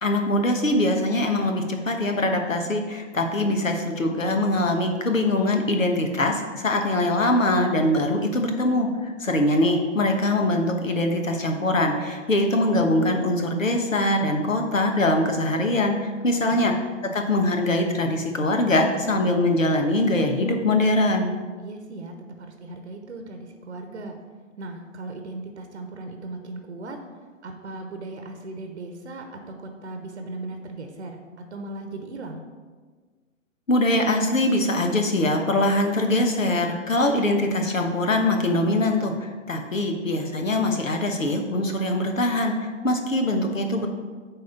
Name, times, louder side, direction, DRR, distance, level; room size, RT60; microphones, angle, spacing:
voice 1, 0.0-16.7 17.0-21.3 33.7-43.9, left 1 dB, 80° left, 4 dB, 1.3 m, -23 dB
voice 2, 16.2-16.7 21.6-24.2 24.6-27.0 27.4-31.2 31.5-32.4, right 2 dB, 60° right, 5 dB, 0.9 m, -37 dB
9.0 x 3.6 x 5.8 m, 1.5 s
figure-of-eight pair, 125°, 39 cm